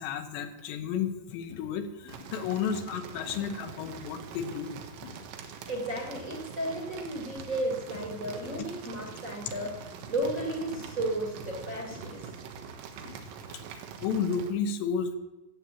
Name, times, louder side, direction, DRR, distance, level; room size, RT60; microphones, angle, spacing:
voice 1, 0.0-4.8 13.7-15.2, left 6 dB, 90° left, 7 dB, 3.4 m, -32 dB
sound 1, 1.5-13.6, left 5 dB, 70° left, 2.8 m, -53 dB
sound 2, 2.1-14.5, right 6 dB, 85° right, 3.4 m, -44 dB
voice 2, 5.7-12.3, right 1 dB, 35° right, -1 dB, 1.3 m, -34 dB
14.5 x 7.6 x 8.3 m, 1.0 s
omnidirectional pair, 5.0 m